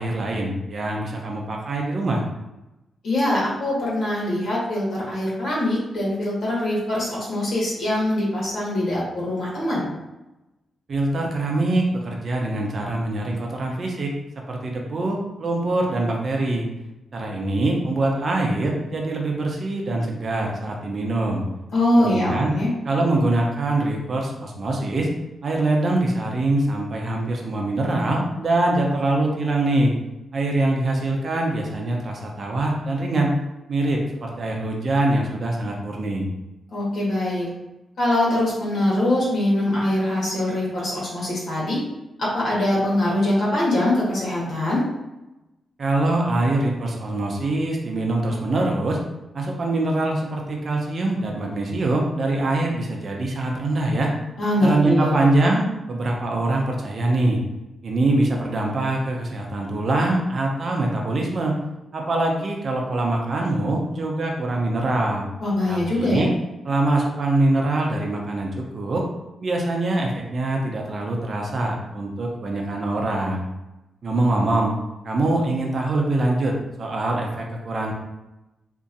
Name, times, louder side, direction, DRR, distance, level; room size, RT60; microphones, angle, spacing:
voice 1, 0.0-2.2 10.9-14.1 14.5-16.6 17.1-21.4 22.0-22.5 22.8-25.1 25.4-29.9 30.3-33.3 33.7-36.3 45.8-49.0 49.3-54.1 54.6-57.4 57.8-61.6 61.9-65.3 65.7-66.3 66.6-69.0 69.4-73.4 74.0-74.7 75.0-77.9, right 2 dB, 55° right, 0 dB, 0.7 m, -23 dB
voice 2, 3.0-9.9 21.7-22.7 36.7-37.5 38.0-41.8 42.2-44.8 54.4-55.2 65.4-66.2, left 1 dB, 70° left, -6 dB, 1.4 m, -23 dB
2.9 x 2.7 x 2.5 m, 0.98 s
cardioid pair, 60°, 0 cm